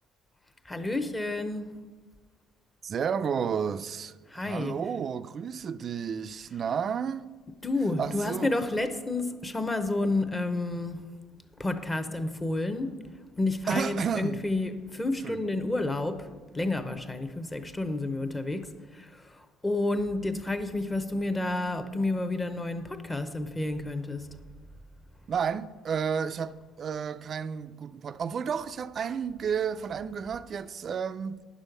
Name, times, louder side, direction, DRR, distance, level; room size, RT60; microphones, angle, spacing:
voice 1, 0.7-1.8 4.3-4.8 7.6-11.0 11.6-13.0 13.4-16.3 16.5-24.3, left 2 dB, 15° left, 0.8 m, -30 dB
voice 2, 2.8-7.3 8.0-8.5 13.7-14.4 15.2-15.4 25.3-31.4, right 7 dB, 40° right, 0.4 m, -31 dB
9.7 x 6.2 x 6.5 m
cardioid pair, 115°, 0 cm